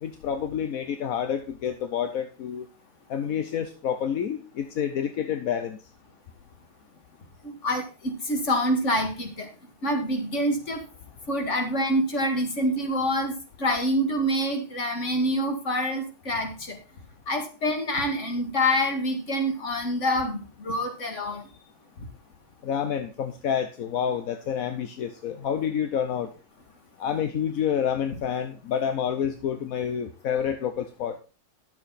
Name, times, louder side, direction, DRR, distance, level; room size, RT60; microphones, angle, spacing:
voice 1, 0.0-2.7 3.1-5.8 22.6-26.3 27.0-31.2, left 8 dB, 55° left, 7 dB, 1.1 m, -28 dB
voice 2, 7.4-9.5 9.8-10.8 11.3-13.3 13.6-16.8 17.3-21.4, equal, 40° left, 4 dB, 2.2 m, -26 dB
11.0 x 7.5 x 4.2 m, 0.33 s
omnidirectional pair, 2.1 m